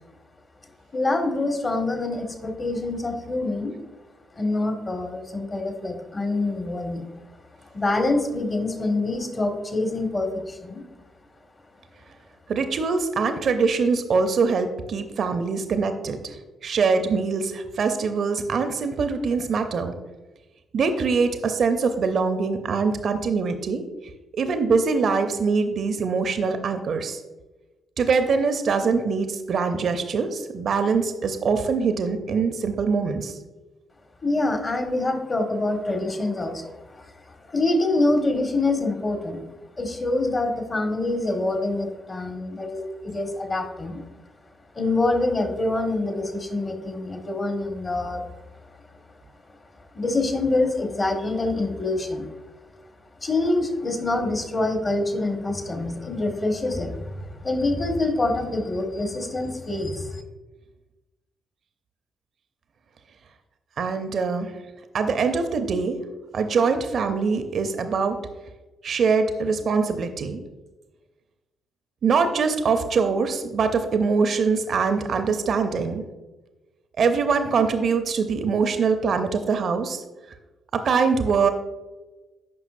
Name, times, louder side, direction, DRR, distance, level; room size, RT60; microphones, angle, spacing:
voice 1, 0.9-3.8 4.3-7.1 7.7-10.8 34.2-37.1 37.5-39.4 39.8-44.0 44.7-48.2 49.9-52.3 53.2-60.2, left 2 dB, 35° left, 4 dB, 1.7 m, -25 dB
voice 2, 12.5-19.9 20.7-23.8 24.3-27.2 28.0-33.4 63.8-64.5 64.9-66.0 66.3-68.2 68.8-70.4 72.0-76.0 77.0-80.0 80.7-81.5, right 5 dB, 55° right, 8 dB, 0.7 m, -23 dB
14.0 x 5.9 x 2.6 m, 1.1 s
figure-of-eight pair, 40°, 0 cm